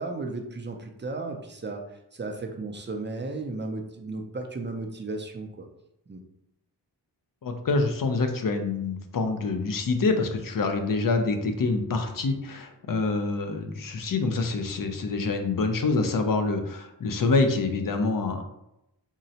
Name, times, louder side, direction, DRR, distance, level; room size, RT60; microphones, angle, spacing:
voice 1, 0.0-1.8 2.1-5.7 6.1-6.2, right 3 dB, 30° right, 3 dB, 0.4 m, -34 dB
voice 2, 7.4-18.4, left 3 dB, 50° left, 6 dB, 0.5 m, -26 dB
3.7 x 2.1 x 2.7 m, 0.85 s
wide cardioid pair, 100°, 42 cm